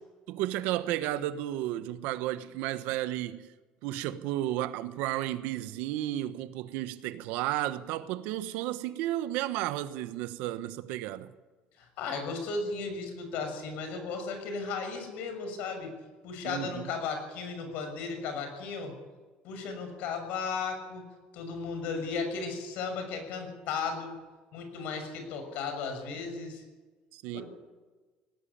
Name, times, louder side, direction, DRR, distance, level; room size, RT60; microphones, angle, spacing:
voice 1, 0.3-3.5 3.8-11.3 16.4-16.9 27.1-27.4, right 14 dB, 90° right, 1.2 m, -33 dB
voice 2, 11.8-15.9 16.2-18.9 19.4-21.0 21.3-24.1 24.5-26.6 27.3-27.4, left 4 dB, 70° left, 6.4 m, -35 dB
19.5 x 17.0 x 8.8 m
cardioid pair, 175°, 3 cm